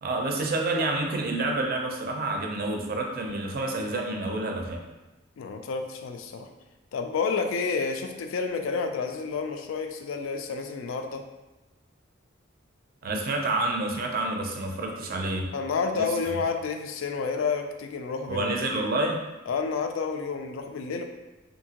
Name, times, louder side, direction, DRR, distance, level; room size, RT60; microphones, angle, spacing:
voice 1, 0.0-4.8 13.0-15.5 15.9-16.4 18.3-19.2, right 2 dB, 50° right, 1 dB, 0.4 m, -28 dB
voice 2, 5.4-6.5 6.9-11.2 15.5-18.5 19.5-21.0, left 5 dB, 75° left, 5 dB, 0.3 m, -30 dB
2.8 x 2.6 x 2.8 m, 1.1 s
head